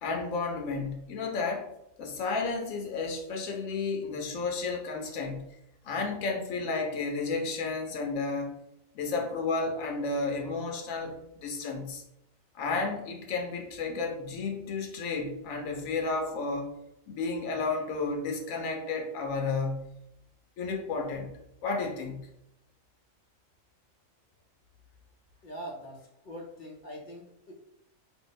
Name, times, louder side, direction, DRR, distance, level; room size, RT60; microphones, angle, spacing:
voice 1, 0.0-1.7 2.0-5.4 5.8-8.6 8.9-12.0 12.5-16.7 17.1-19.9 20.6-21.3 21.6-22.2, left 4 dB, 80° left, 2 dB, 1.1 m, -32 dB
voice 2, 25.4-27.5, equal, 60° left, -1 dB, 0.5 m, -43 dB
2.9 x 2.0 x 3.9 m, 0.84 s
omnidirectional pair, 1.4 m